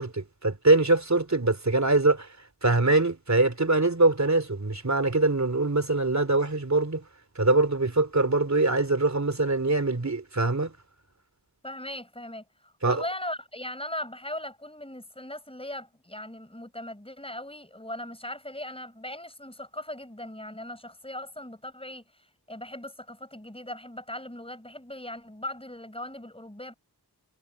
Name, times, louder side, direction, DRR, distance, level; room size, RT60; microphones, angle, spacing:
voice 1, 0.0-2.3 2.6-7.0 7.3-10.7 12.8-13.0, right 2 dB, 40° right, 3.3 m, -23 dB
voice 2, 11.6-26.7, left 1 dB, 15° left, 5.2 m, -39 dB
wide cardioid pair, 45°, 40 cm